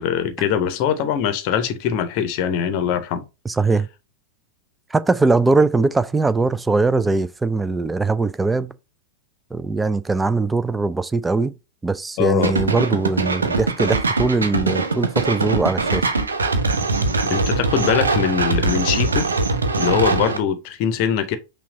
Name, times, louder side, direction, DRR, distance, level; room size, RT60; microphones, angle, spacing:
voice 1, 0.0-3.3 12.2-12.5 17.2-19.3 19.8-21.4, left 8 dB, 45° left, 0.7 m, -22 dB
voice 2, 3.5-3.9 4.9-8.7 9.5-11.5 11.8-16.1, right 3 dB, 10° right, 0.3 m, -21 dB
sound 1, 12.4-20.4, right 3 dB, 75° right, 0.6 m, -22 dB
5.7 x 2.2 x 3.8 m
figure-of-eight pair, 90°, 0 cm